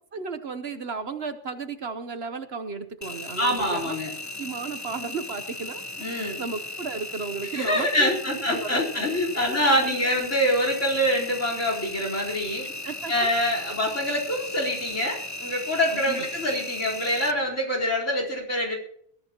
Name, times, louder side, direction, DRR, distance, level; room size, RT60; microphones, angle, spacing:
voice 1, 0.1-4.0 4.4-5.8 6.1-9.1 9.3-10.1 12.8-13.3 15.9-16.3, right 4 dB, 55° right, 9 dB, 1.2 m, -34 dB
Engine, 3.0-17.3, left 1 dB, 20° left, 0.5 m, -37 dB
voice 2, 3.4-4.1 6.0-6.4 7.5-12.7 13.1-18.8, equal, 65° left, 0 dB, 4.8 m, -25 dB
21.0 x 13.5 x 3.0 m, 0.65 s
omnidirectional pair, 1.4 m